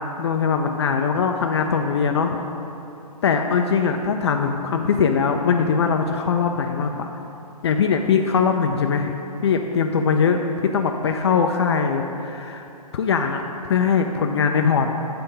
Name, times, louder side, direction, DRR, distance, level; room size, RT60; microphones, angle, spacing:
voice 1, 0.2-2.4 3.2-7.1 7.6-9.1 9.4-10.4 10.7-12.6 12.9-14.9, left 6 dB, 45° left, 4 dB, 0.4 m, -21 dB
9.6 x 3.4 x 5.5 m, 2.8 s
hypercardioid pair, 155°, 20 cm